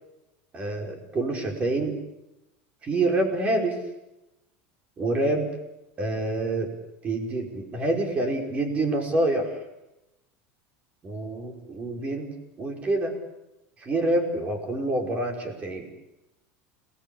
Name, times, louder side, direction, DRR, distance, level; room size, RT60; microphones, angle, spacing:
voice 1, 0.5-2.0 2.8-3.8 5.0-5.5 6.0-6.7 7.0-9.6 11.0-12.3 12.6-13.2 13.8-15.9, right 2 dB, 20° right, 3 dB, 5.3 m, -27 dB
29.5 x 19.5 x 8.8 m, 0.94 s
supercardioid pair, 160°, 6 cm